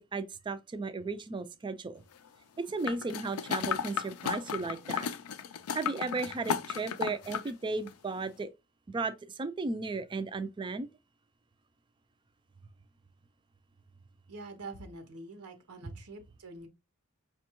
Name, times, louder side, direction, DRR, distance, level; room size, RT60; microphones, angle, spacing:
voice 1, 0.0-2.0 2.6-5.1 5.7-8.5 8.9-10.9, right 3 dB, 20° right, 0.3 m, -35 dB
sound 1, 2.8-7.5 7.9-8.0, left 7 dB, 75° left, 0.4 m, -34 dB
voice 2, 14.3-16.7, right 2 dB, 85° right, 0.7 m, -45 dB
5.0 x 2.2 x 2.9 m
head